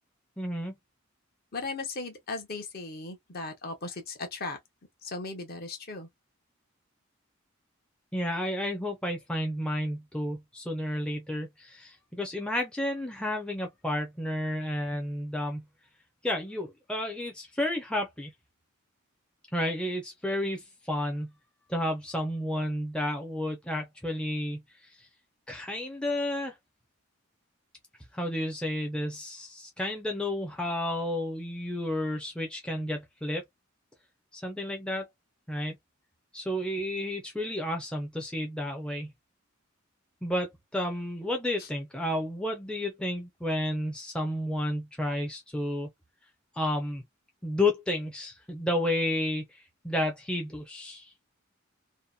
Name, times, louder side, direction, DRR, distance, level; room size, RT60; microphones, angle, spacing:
voice 1, 0.4-0.7 8.1-15.6 16.2-18.3 19.5-21.3 21.7-24.6 25.5-26.5 28.1-33.4 34.3-35.1 35.5-35.8 36.3-39.1 40.2-45.9 46.6-47.0 47.4-51.1, left 1 dB, 5° left, 0.5 m, -31 dB
voice 2, 1.5-4.6 5.0-6.1 41.6-41.7, left 3 dB, 45° left, 0.8 m, -37 dB
2.7 x 2.1 x 2.3 m
head